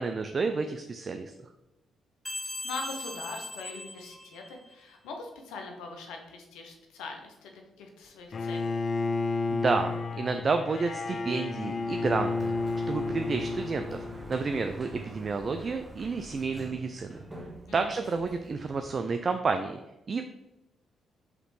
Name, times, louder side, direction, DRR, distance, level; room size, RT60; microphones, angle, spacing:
voice 1, 0.0-1.3 9.5-12.5 12.9-14.0 14.3-17.2 17.7-19.8 20.1-20.2, right 4 dB, 45° right, 6 dB, 0.3 m, -30 dB
sound 1, 2.2-4.8, left 1 dB, 15° left, 0.8 m, -39 dB
voice 2, 2.6-8.7 17.7-18.1, left 3 dB, 80° left, 3 dB, 0.7 m, -42 dB
Bowed string instrument, 8.3-14.4, left 3 dB, 50° left, 0.3 m, -31 dB
Sliding door, 11.6-19.3, right 1 dB, 20° right, 1.1 m, -46 dB
4.9 x 3.1 x 3.2 m, 0.96 s
supercardioid pair, 55°, 0 cm